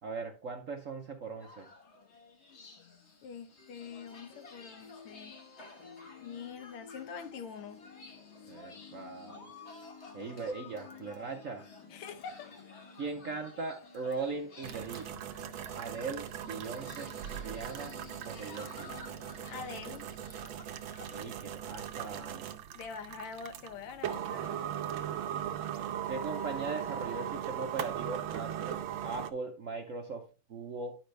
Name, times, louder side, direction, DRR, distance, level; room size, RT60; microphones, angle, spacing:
voice 1, 0.0-1.7 8.5-9.5 10.1-11.6 13.0-15.1 15.7-18.0 18.2-18.9 21.1-22.5 26.1-31.0, right 4 dB, 55° right, 0.9 m, -39 dB
sound 1, 1.4-21.2, left 3 dB, 45° left, 1.0 m, -54 dB
voice 2, 3.2-5.4 6.2-7.9 11.9-12.5 19.5-20.1 22.7-24.7, left 6 dB, 85° left, 1.8 m, -44 dB
sound 2, 3.6-19.6, left 5 dB, 60° left, 2.7 m, -55 dB
sound 3, 14.6-29.3, right 10 dB, 75° right, 1.5 m, -39 dB
10.5 x 5.0 x 3.2 m
omnidirectional pair, 2.3 m